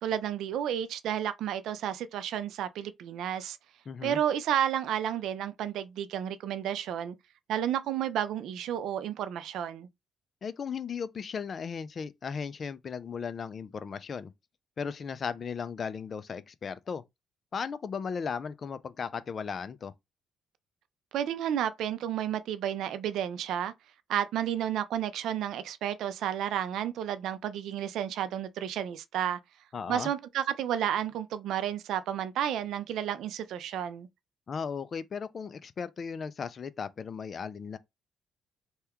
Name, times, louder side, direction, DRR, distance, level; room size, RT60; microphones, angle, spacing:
voice 1, 0.0-3.6 4.0-7.1 7.5-9.9 21.1-23.7 24.1-29.4 29.9-34.1, right 10 dB, 80° right, 0.3 m, -31 dB
voice 2, 3.9-4.2 10.4-14.3 14.8-17.0 17.5-19.9 29.7-30.1 34.5-37.8, left 6 dB, 45° left, 0.4 m, -36 dB
2.8 x 2.3 x 3.4 m
cardioid pair, 90°, 0 cm